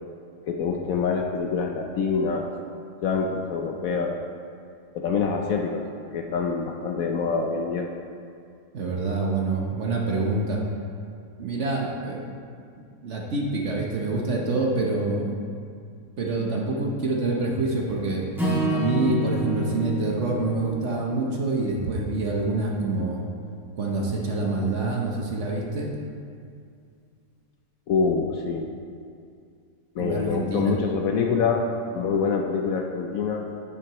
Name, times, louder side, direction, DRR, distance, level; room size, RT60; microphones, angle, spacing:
voice 1, 0.5-2.5 3.0-4.2 4.9-5.9 6.1-7.9 27.9-28.7 30.0-33.5, left 5 dB, 70° left, 2 dB, 0.9 m, -25 dB
voice 2, 8.7-10.6 11.4-12.2 12.8-15.4 16.2-18.3 18.7-23.2 23.8-25.9 30.0-30.8, right 3 dB, 50° right, -1 dB, 1.0 m, -26 dB
Acoustic guitar / Strum, 18.3-22.7, right 1 dB, ahead, 1.9 m, -29 dB
9.9 x 7.7 x 3.0 m, 2.3 s
omnidirectional pair, 1.8 m